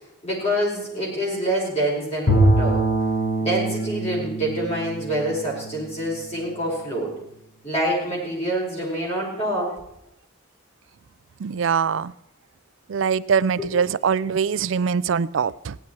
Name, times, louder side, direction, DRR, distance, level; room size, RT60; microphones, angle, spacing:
voice 1, 0.2-2.8 3.4-7.2 7.6-9.7 13.6-13.7, right 1 dB, 30° left, -4 dB, 5.1 m, -26 dB
Bowed string instrument, 2.3-6.5, right 1 dB, 85° left, 2.2 m, -23 dB
voice 2, 11.4-12.1 12.9-15.8, right 6 dB, 65° right, 17 dB, 0.4 m, -23 dB
16.0 x 11.0 x 4.7 m, 0.83 s
head